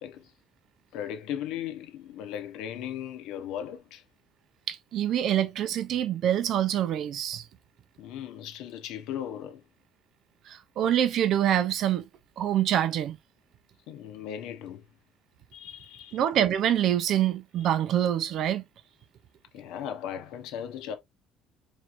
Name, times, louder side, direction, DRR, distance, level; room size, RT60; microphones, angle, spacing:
voice 1, 0.0-0.3 0.9-4.0 8.0-9.6 13.9-14.8 15.5-16.2 19.5-21.0, left 9 dB, 75° left, 0.9 m, -37 dB
voice 2, 4.7-7.4 10.5-12.1 12.4-13.2 16.1-18.6, right 10 dB, 50° right, 0.5 m, -25 dB
4.5 x 3.1 x 2.4 m
cardioid pair, 160°, 0 cm